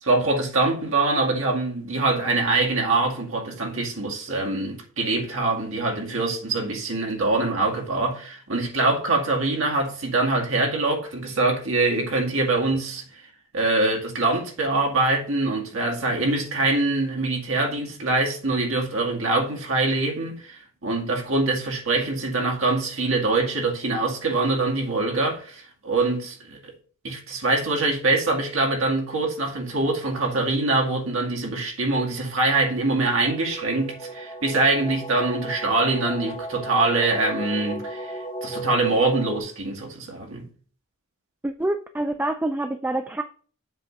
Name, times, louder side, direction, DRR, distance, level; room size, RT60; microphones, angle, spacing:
voice 1, 0.0-13.2 13.5-26.7 27.0-40.5, right 2 dB, 65° right, 2.1 m, -24 dB
sound 1, 33.2-39.4, right 2 dB, 20° left, 1.4 m, -34 dB
voice 2, 41.4-43.2, right 1 dB, 10° right, 0.3 m, -26 dB
7.6 x 3.5 x 6.0 m
head